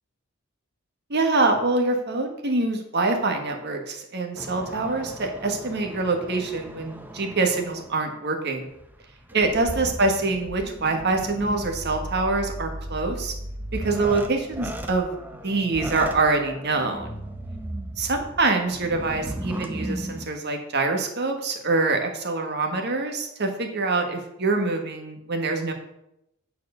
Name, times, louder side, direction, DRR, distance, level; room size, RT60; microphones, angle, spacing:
voice 1, 1.1-8.7 9.3-13.3 13.7-15.1 15.4-17.2 18.0-25.7, right 3 dB, 50° right, 4 dB, 1.5 m, -25 dB
sound 1, 4.4-8.1 8.7-20.3, right 1 dB, 10° right, 0.7 m, -36 dB
9.3 x 4.6 x 6.7 m, 0.82 s
head